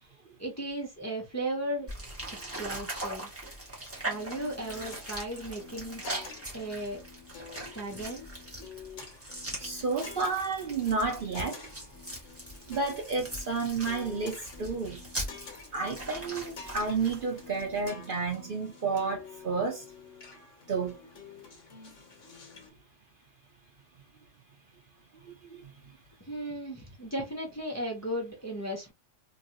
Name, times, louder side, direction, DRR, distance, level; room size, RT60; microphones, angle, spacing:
voice 1, 0.4-1.9 2.4-3.3 3.9-7.0 7.7-8.3 26.3-28.9, right 1 dB, 15° left, 0.7 m, -36 dB
sound 1, 1.9-17.9, right 1 dB, 10° right, 1.1 m, -41 dB
sound 2, 3.9-22.7, left 5 dB, 75° left, 1.4 m, -49 dB
voice 2, 9.6-11.7 12.7-15.0 15.7-19.8 20.7-21.0, right 4 dB, 50° right, 0.8 m, -31 dB
3.1 x 2.7 x 2.7 m
omnidirectional pair, 1.3 m